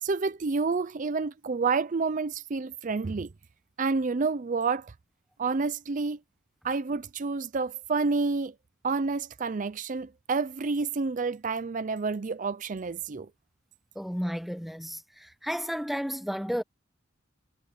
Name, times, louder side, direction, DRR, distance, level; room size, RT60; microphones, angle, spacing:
voice 1, 0.0-3.3 3.8-4.9 5.4-6.2 6.6-8.5 8.8-13.3, right 4 dB, 40° right, 0.5 m, -29 dB
voice 2, 13.9-16.6, equal, ahead, 0.9 m, -32 dB
head